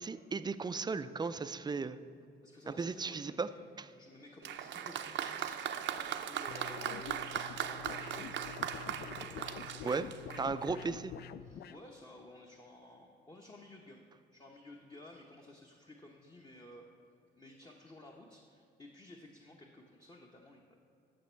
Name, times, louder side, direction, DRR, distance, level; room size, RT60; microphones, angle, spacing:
voice 1, 0.0-2.0 2.7-3.5 3.8-3.9 9.8-10.1 10.4-11.1, right 4 dB, 20° right, 12 dB, 0.4 m, -36 dB
voice 2, 2.4-3.7 4.0-5.7 5.9-8.5 9.2-10.8 11.4-14.1 14.3-16.9 17.4-20.8, left 1 dB, 20° left, 0 dB, 0.9 m, -54 dB
Applause, 4.4-10.9, right 9 dB, 65° right, 0.6 m, -39 dB
sound 1, 6.5-11.8, left 9 dB, 55° left, 0.4 m, -47 dB
14.0 x 6.0 x 4.5 m, 2.6 s
cardioid pair, 90°, 20 cm